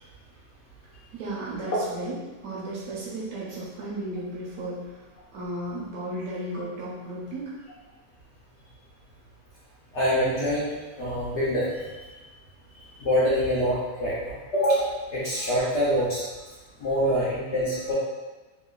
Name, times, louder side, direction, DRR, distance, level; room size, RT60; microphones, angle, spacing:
voice 1, 1.1-2.2 2.4-4.9 5.3-7.5 17.6-17.7, right 1 dB, 70° right, -7 dB, 1.0 m, -34 dB
voice 2, 9.9-11.9 12.7-16.3 16.8-17.9, equal, 70° left, -8 dB, 0.7 m, -25 dB
2.9 x 2.1 x 2.2 m, 1.2 s
omnidirectional pair, 1.6 m